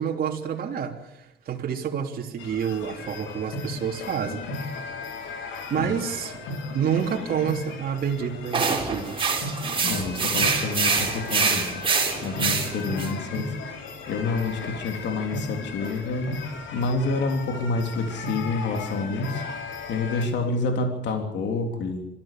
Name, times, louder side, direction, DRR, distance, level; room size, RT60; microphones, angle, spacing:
voice 1, 0.0-4.4 5.7-6.4 6.7-9.2, right 8 dB, 50° right, 1 dB, 3.2 m, -28 dB
sound 1, 2.4-20.3, left 3 dB, 85° left, 4.1 m, -36 dB
sound 2, 8.5-13.1, right 5 dB, 25° right, 4.3 m, -25 dB
voice 2, 9.8-11.8 12.2-13.5 14.1-16.3 16.7-19.4 19.9-22.0, left 3 dB, 65° left, 4 dB, 3.3 m, -28 dB
25.5 x 15.5 x 7.5 m, 0.90 s
cardioid pair, 145°, 19 cm